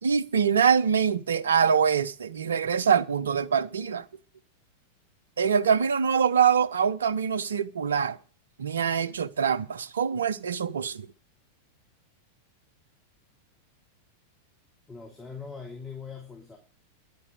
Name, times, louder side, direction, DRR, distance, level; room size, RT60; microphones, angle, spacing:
voice 1, 0.0-4.0 5.4-8.2 8.6-11.1, right 7 dB, 70° right, 0.8 m, -24 dB
voice 2, 14.9-16.6, left 5 dB, 15° left, 3.2 m, -41 dB
11.0 x 9.6 x 8.0 m
figure-of-eight pair, 90°, 0 cm